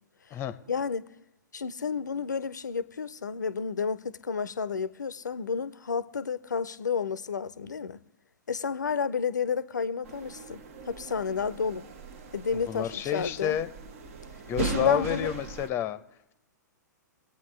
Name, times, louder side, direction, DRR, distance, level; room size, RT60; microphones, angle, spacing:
voice 1, 0.7-1.0 1.5-8.0 8.5-11.9 12.3-13.6 14.6-15.3, left 6 dB, 70° left, 0.6 m, -31 dB
sound 1, 10.0-15.7, right 5 dB, 50° right, 0.9 m, -38 dB
voice 2, 12.5-13.7 14.4-16.0, left 10 dB, 25° left, 0.7 m, -30 dB
22.5 x 8.6 x 3.2 m
figure-of-eight pair, 110°, 10 cm